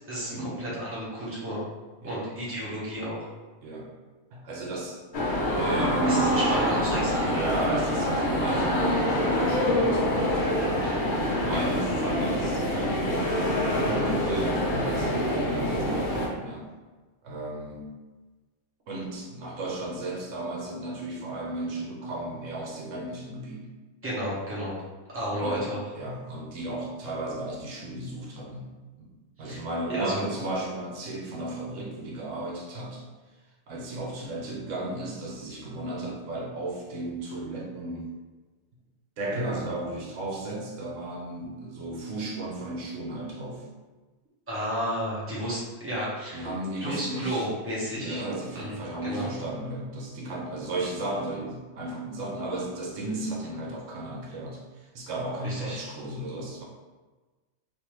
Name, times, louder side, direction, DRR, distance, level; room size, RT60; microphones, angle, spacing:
voice 1, 0.1-1.6 2.0-3.3 6.1-7.3 11.5-11.7 24.0-24.8 25.1-25.8 29.4-29.6 29.9-30.3 44.5-46.5 46.8-48.2 48.5-48.8 49.0-49.3 55.4-55.8, equal, 10° right, -7 dB, 0.9 m, -32 dB
voice 2, 4.3-5.1 5.5-6.5 7.2-10.5 11.2-13.3 13.8-15.2 15.5-16.7 17.2-17.9 18.9-23.7 25.4-25.7 25.9-28.7 29.0-29.1 29.4-33.0 33.7-38.1 39.2-43.6 46.3-47.5 47.9-56.6, right 2 dB, 75° right, -2 dB, 1.0 m, -34 dB
sound 1, 5.1-16.3, left 1 dB, 50° left, 0.7 m, -26 dB
3.5 x 2.6 x 3.0 m, 1.3 s
omnidirectional pair, 1.3 m